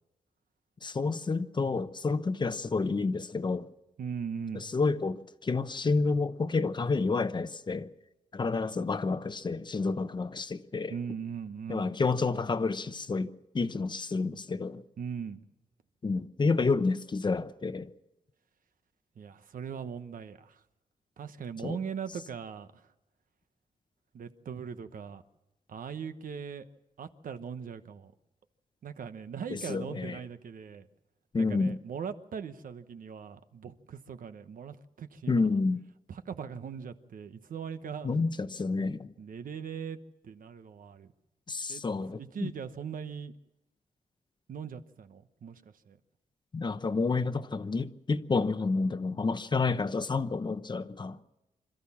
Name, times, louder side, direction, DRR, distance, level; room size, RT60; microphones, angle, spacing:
voice 1, 0.8-3.7 4.5-7.9 8.3-11.0 11.7-14.8 16.0-17.9 21.6-21.8 29.5-30.2 31.3-31.8 35.3-35.8 38.0-39.1 41.5-42.5 46.5-51.2, left 4 dB, 30° left, 0.8 m, -29 dB
voice 2, 4.0-4.7 10.9-11.9 15.0-15.4 19.2-20.6 21.2-22.9 24.1-25.2 25.7-26.7 27.0-28.1 28.8-30.9 31.4-35.5 36.1-38.1 39.2-40.0 40.2-41.1 41.7-41.8 42.1-43.3 44.5-46.0, right 7 dB, 70° right, 1.1 m, -40 dB
26.5 x 13.5 x 7.3 m
wide cardioid pair, 135°, 15 cm